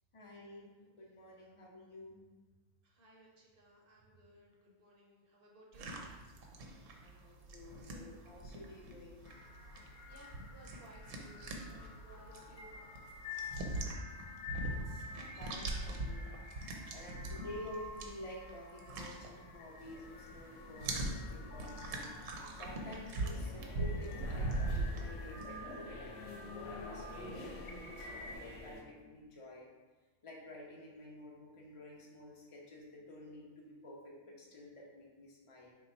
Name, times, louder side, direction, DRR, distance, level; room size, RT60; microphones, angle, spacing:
voice 1, 0.1-0.7 0.9-2.2 7.0-9.2 14.4-15.0 15.4-16.4 16.9-29.7 30.2-35.7, left 1 dB, 45° left, -3 dB, 0.4 m, -51 dB
voice 2, 2.8-6.0 10.1-12.7, right 1 dB, 60° right, -2 dB, 0.6 m, -60 dB
sound 1, 5.7-20.0 20.3-25.5, right 2 dB, 80° right, 0.9 m, -41 dB
sound 2, 9.2-28.4, left 3 dB, 70° left, 0.8 m, -51 dB
sound 3, 19.8-28.8, left 2 dB, 90° left, 1.0 m, -49 dB
3.3 x 2.2 x 4.1 m, 1.3 s
omnidirectional pair, 1.3 m